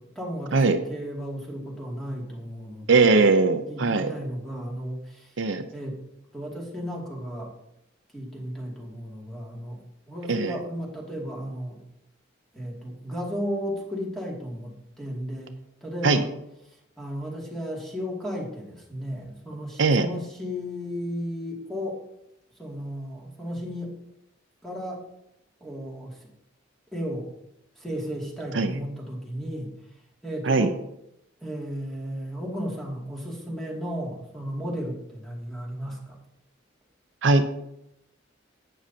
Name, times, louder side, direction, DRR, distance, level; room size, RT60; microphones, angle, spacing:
voice 1, 0.0-3.2 3.7-5.4 5.7-6.0 6.3-7.5 8.1-9.8 10.1-11.8 12.5-15.5 15.8-16.3 17.0-22.0 22.6-23.9 24.6-25.0 25.6-26.2 26.9-27.3 27.8-29.7 30.2-30.8 31.4-36.2, equal, ahead, -3 dB, 2.3 m, -34 dB
voice 2, 2.9-4.1 5.4-5.7 10.3-10.6 16.0-16.2 19.8-20.1 28.5-28.7 30.4-30.7 37.2-37.5, right 3 dB, 75° right, 8 dB, 0.6 m, -20 dB
11.0 x 9.0 x 2.8 m, 0.81 s
head